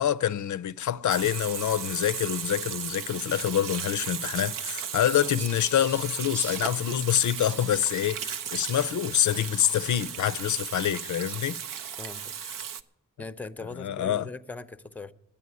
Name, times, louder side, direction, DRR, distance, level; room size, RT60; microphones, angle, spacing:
voice 1, 0.0-11.6 13.8-14.3, left 10 dB, 65° left, 0.5 m, -26 dB
Water tap faucet / Sink (filling or washing), 1.1-12.8, right 8 dB, 85° right, 0.6 m, -36 dB
Fowl, 5.0-11.7, right 3 dB, 35° right, 0.8 m, -49 dB
voice 2, 12.0-12.3 13.2-15.1, left 3 dB, 5° left, 0.6 m, -40 dB
10.5 x 8.3 x 9.4 m
supercardioid pair, 40°, 32 cm